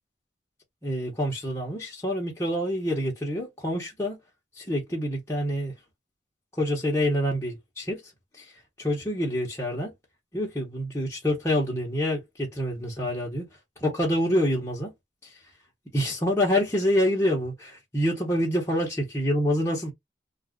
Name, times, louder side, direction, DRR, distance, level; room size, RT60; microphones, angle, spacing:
voice 1, 0.8-4.2 4.6-5.7 6.6-8.0 8.8-9.9 10.3-13.5 13.8-14.9 15.9-19.9, equal, 15° left, 1.0 m, -26 dB
2.5 x 2.4 x 3.5 m
head